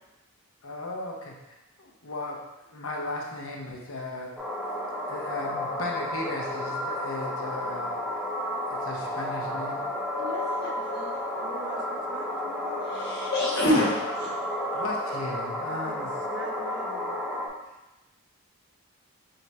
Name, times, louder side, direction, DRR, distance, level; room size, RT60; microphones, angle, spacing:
voice 1, 0.6-2.4 2.7-4.3 5.1-7.9 8.7-9.8 14.7-16.1, left 2 dB, 70° left, 0 dB, 0.8 m, -36 dB
sound 1, 4.4-17.5, left 1 dB, 5° right, 0.6 m, -32 dB
voice 2, 10.1-11.1 13.0-14.3, left 1 dB, 45° left, -6 dB, 1.3 m, -27 dB
voice 3, 11.3-12.9 15.7-17.2, right 3 dB, 50° right, 2 dB, 0.6 m, -43 dB
3.8 x 3.4 x 4.1 m, 1.0 s
head